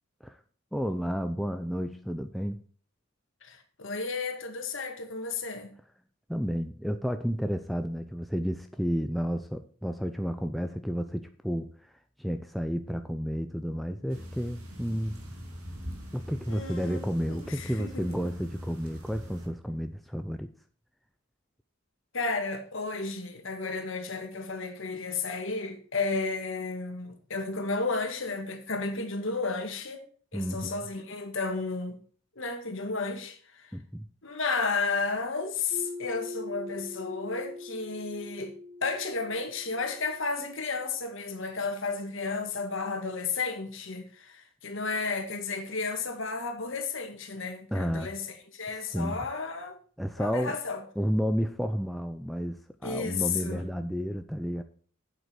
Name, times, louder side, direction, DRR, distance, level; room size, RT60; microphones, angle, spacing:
voice 1, 0.7-2.6 6.3-11.7 12.2-15.2 16.1-20.5 30.3-30.8 33.7-34.1 47.7-48.1 48.9-49.2 50.0-50.6 51.0-54.6, equal, ahead, 0.5 m, -31 dB
voice 2, 3.4-5.7 16.5-18.2 22.1-30.0 30.3-32.0 32.4-33.7 34.2-38.6 38.8-49.8 50.2-50.8 52.8-53.7, left 4 dB, 60° left, 2.0 m, -33 dB
sound 1, 14.1-19.5, equal, 90° right, 2.5 m, -42 dB
sound 2, 35.7-40.4, left 2 dB, 55° right, 3.4 m, -42 dB
8.2 x 7.8 x 6.6 m
head